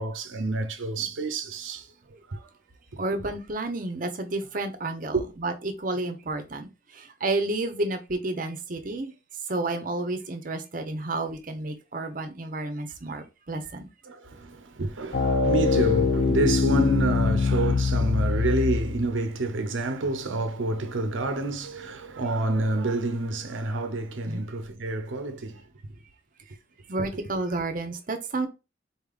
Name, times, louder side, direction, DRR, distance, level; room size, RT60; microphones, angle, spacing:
voice 1, 0.0-1.9 2.3-2.4 2.9-3.0 5.1-5.2 14.1-25.6, right 2 dB, 90° right, 0.7 m, -28 dB
voice 2, 3.0-9.1 9.5-13.9 24.3-24.4 26.9-28.5, right 2 dB, 45° right, 0.8 m, -31 dB
sound 1, 15.1-19.0, left 4 dB, 55° left, 0.5 m, -23 dB
4.2 x 3.5 x 2.4 m
head